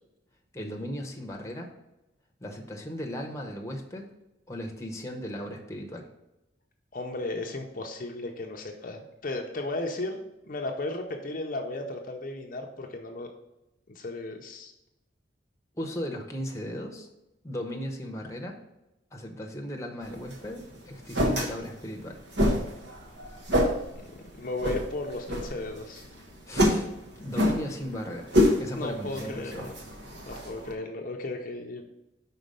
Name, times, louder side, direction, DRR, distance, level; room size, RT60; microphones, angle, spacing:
voice 1, 0.5-1.7 2.4-4.1 4.5-6.1 15.8-17.1 17.4-18.6 19.1-22.2 26.5-26.9 27.2-28.3 28.6-29.7, equal, 15° left, 2 dB, 0.8 m, -36 dB
voice 2, 6.9-13.3 13.9-14.7 24.4-26.0 28.7-29.7 30.1-31.8, left 2 dB, 45° left, 2 dB, 0.6 m, -35 dB
sound 1, 20.0-30.7, equal, 65° right, 1.2 m, -28 dB
5.3 x 4.0 x 5.2 m, 0.93 s
head